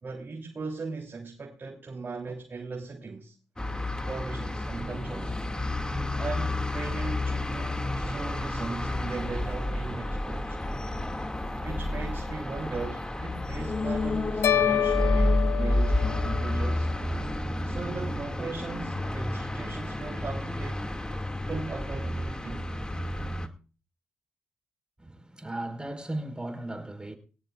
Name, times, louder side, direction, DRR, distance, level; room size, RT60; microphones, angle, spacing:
voice 1, 0.0-3.4 4.1-5.4 6.2-10.6 11.6-16.9 17.6-20.8 21.4-22.7, right 4 dB, 45° right, 3.2 m, -38 dB
sound 1, 3.6-23.5, left 1 dB, 15° left, 2.2 m, -30 dB
sound 2, 13.5-17.2 17.5-17.6, left 4 dB, 45° left, 2.3 m, -32 dB
sound 3, 14.4-16.7, left 11 dB, 75° left, 0.8 m, -28 dB
voice 2, 25.0-27.1, right 1 dB, 15° right, 4.7 m, -36 dB
21.0 x 18.0 x 2.5 m
supercardioid pair, 50°, 5 cm